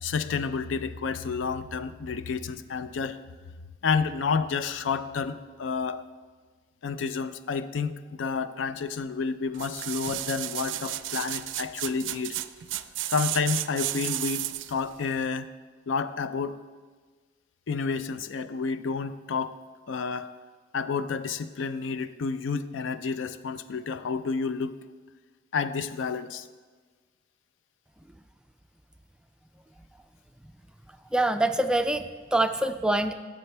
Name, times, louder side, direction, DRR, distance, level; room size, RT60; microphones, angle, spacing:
voice 1, 0.0-3.2 3.8-6.0 6.8-7.9 8.2-12.4 13.1-15.5 15.9-16.6 17.7-19.6 19.9-20.3 20.7-24.7 25.5-26.4, left 5 dB, 85° left, 12 dB, 0.4 m, -30 dB
sound 1, 9.5-14.8 15.3-15.4, right 14 dB, 80° right, 0.4 m, -33 dB
voice 2, 31.1-33.1, right 1 dB, 5° right, 8 dB, 0.3 m, -25 dB
13.5 x 7.6 x 3.3 m, 1.4 s
head